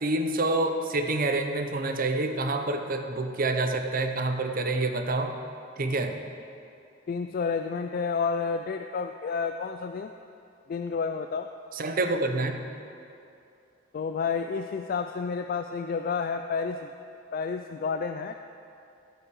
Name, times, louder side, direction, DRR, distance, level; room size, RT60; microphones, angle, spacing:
voice 1, 0.0-5.4 5.8-6.2 11.7-12.6, right 2 dB, 45° right, 6 dB, 0.7 m, -27 dB
voice 2, 7.1-10.1 10.7-11.5 13.9-16.9 17.3-18.4, left 5 dB, 45° left, 7 dB, 0.3 m, -30 dB
16.0 x 6.3 x 4.7 m, 2.6 s
head